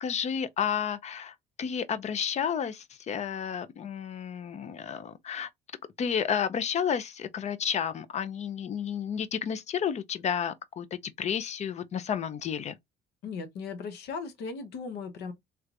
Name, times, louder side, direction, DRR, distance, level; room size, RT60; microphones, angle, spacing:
voice 1, 0.0-5.5 6.0-12.8, left 8 dB, 40° left, 0.5 m, -31 dB
voice 2, 13.2-15.3, left 5 dB, 80° left, 1.0 m, -37 dB
3.3 x 3.2 x 2.5 m
cardioid pair, 110°, 17 cm